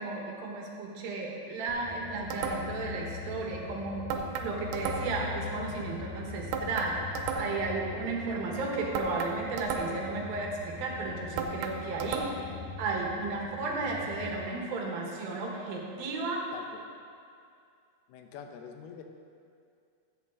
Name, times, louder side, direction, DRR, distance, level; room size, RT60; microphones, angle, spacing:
voice 1, 0.0-12.5 12.8-16.5, right 3 dB, 75° right, 0 dB, 2.9 m, -34 dB
sound 1, 1.7-14.3, left 4 dB, 60° left, 2.0 m, -42 dB
sound 2, 2.3-2.9 4.1-5.3 6.5-7.7 8.9-10.2 11.4-12.6, right 5 dB, 90° right, 2.6 m, -34 dB
voice 2, 16.5-16.9 18.1-19.0, left 7 dB, 85° left, 5 dB, 2.7 m, -45 dB
14.5 x 7.8 x 3.7 m, 2.4 s
omnidirectional pair, 4.5 m